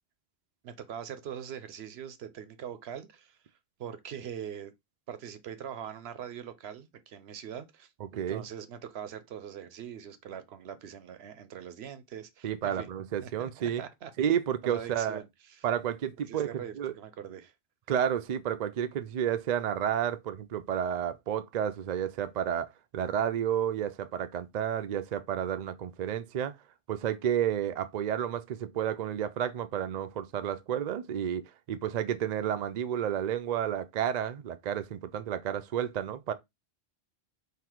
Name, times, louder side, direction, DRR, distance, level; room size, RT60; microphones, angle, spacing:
voice 1, 0.6-3.4 3.8-4.7 5.1-12.9 13.2-14.1 14.6-15.6 16.2-17.5, right 9 dB, 75° right, 0.9 m, -42 dB
voice 2, 8.0-8.4 12.4-13.8 14.2-15.2 15.6-16.9 17.9-22.7 22.9-26.6 26.9-36.3, right 9 dB, 55° right, 0.5 m, -31 dB
3.9 x 2.8 x 4.4 m
omnidirectional pair, 1.1 m